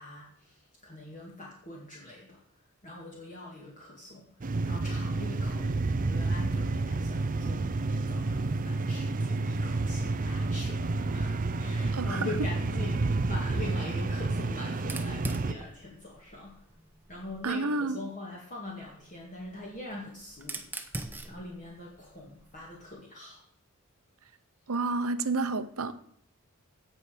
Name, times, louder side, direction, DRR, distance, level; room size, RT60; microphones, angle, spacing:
voice 1, 0.0-2.4 2.8-16.7 17.1-23.4, left 2 dB, 35° left, -3 dB, 2.2 m, -43 dB
sound 1, 4.4-15.5, right 3 dB, 35° right, 0.5 m, -30 dB
voice 2, 11.9-12.3 17.4-18.0 24.7-25.9, right 3 dB, 70° right, 12 dB, 0.9 m, -29 dB
Fire, 14.8-17.5 18.7-22.9, right 2 dB, 10° right, 0.9 m, -43 dB
17.0 x 6.1 x 5.1 m, 0.66 s
head